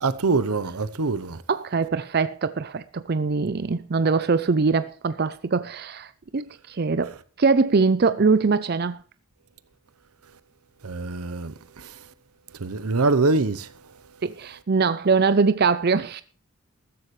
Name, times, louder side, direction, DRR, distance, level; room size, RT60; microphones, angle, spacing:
voice 1, 0.0-1.4 10.8-11.9 12.6-13.7, right 3 dB, 90° right, 0.9 m, -24 dB
voice 2, 1.5-7.1 7.4-9.0 14.2-16.2, right 4 dB, 45° right, 0.5 m, -22 dB
14.5 x 13.5 x 3.2 m
head